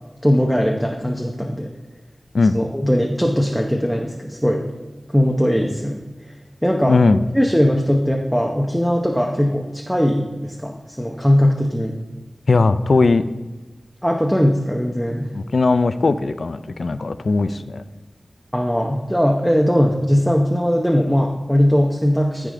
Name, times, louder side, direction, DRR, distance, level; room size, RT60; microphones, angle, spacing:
voice 1, 0.2-1.7 2.5-4.7 5.1-6.0 6.6-7.0 7.3-12.0 14.0-15.3 18.5-22.5, equal, ahead, 1 dB, 0.8 m, -19 dB
voice 2, 6.9-7.2 12.5-13.3 15.3-17.8, left 3 dB, 75° left, 12 dB, 0.4 m, -18 dB
15.0 x 5.0 x 3.7 m, 1.2 s
wide cardioid pair, 85°, 0 cm